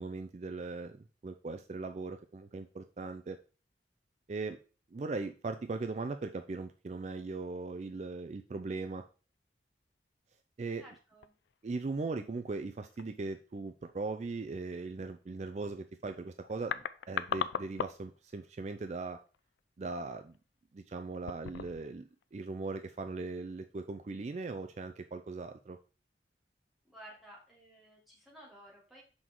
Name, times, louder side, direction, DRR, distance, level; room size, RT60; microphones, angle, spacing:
voice 1, 0.0-3.4 4.3-4.6 4.9-9.0 10.6-10.8 11.6-19.2 19.8-20.4 20.7-25.8, right 3 dB, 40° right, 8 dB, 0.4 m, -39 dB
voice 2, 10.8-11.3 26.8-29.0, right 1 dB, ahead, -5 dB, 2.2 m, -54 dB
sound 1, 11.2-11.5 11.8-12.0 12.7-13.1 16.1-16.2 16.4-18.2 18.5-18.7 19.3-19.6 20.1-20.4 21.1-22.0 22.2-22.3, left 7 dB, 75° left, 0.3 m, -38 dB
6.2 x 4.6 x 3.7 m, 0.36 s
head